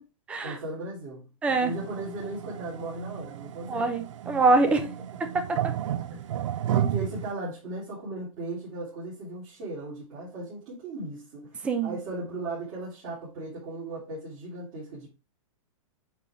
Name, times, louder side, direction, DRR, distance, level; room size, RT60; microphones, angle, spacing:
voice 1, 0.4-1.3 1.6-3.9 4.6-4.7 6.0-6.3 6.7-15.1, right 2 dB, 35° right, 3.3 m, -37 dB
voice 2, 1.4-1.7 3.7-4.8 5.3-5.7 11.6-11.9, right 3 dB, 5° right, 0.5 m, -24 dB
sound 1, 1.5-7.3, right 11 dB, 65° right, 0.5 m, -33 dB
8.8 x 3.6 x 3.6 m
hypercardioid pair, 165°, 18 cm